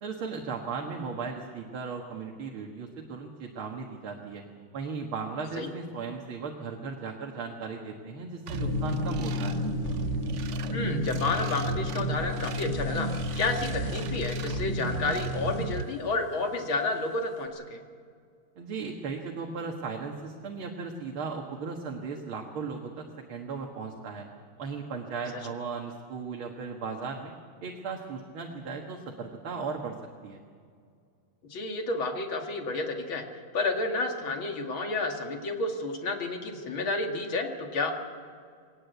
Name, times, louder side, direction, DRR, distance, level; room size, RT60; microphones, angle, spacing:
voice 1, 0.0-4.4 4.7-9.6 18.6-24.2 24.6-27.3 27.6-30.0 30.2-30.4, right 5 dB, 85° right, 1 dB, 2.5 m, -36 dB
sound 1, 8.5-15.6, left 3 dB, 35° left, 3.3 m, -33 dB
sound 2, 8.5-15.8, right 8 dB, 60° right, 0.7 m, -35 dB
voice 2, 10.7-13.1 13.4-17.8 31.5-33.2 33.5-37.9, left 3 dB, 75° left, 3 dB, 3.0 m, -30 dB
21.5 x 18.5 x 8.1 m, 2.2 s
omnidirectional pair, 2.2 m